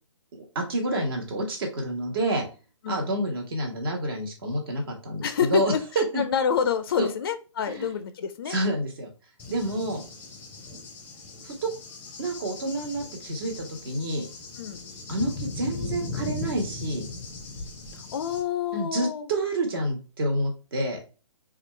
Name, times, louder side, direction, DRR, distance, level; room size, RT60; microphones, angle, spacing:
voice 1, 0.5-2.4 2.9-6.2 7.0-7.1 7.7-7.9 8.5-9.1 9.5-10.0 11.4-11.7 12.2-14.3 15.1-17.0 18.7-21.0, right 1 dB, 45° right, 2 dB, 1.4 m, -28 dB
voice 2, 5.2-5.8 6.1-8.6 9.6-9.8 14.6-14.8 17.9-19.3, left 7 dB, 50° left, 11 dB, 0.4 m, -28 dB
Cricket / Thunder, 9.4-18.4, left 3 dB, 10° left, 0.7 m, -38 dB
4.3 x 2.5 x 3.1 m, 0.33 s
figure-of-eight pair, 140°, 16 cm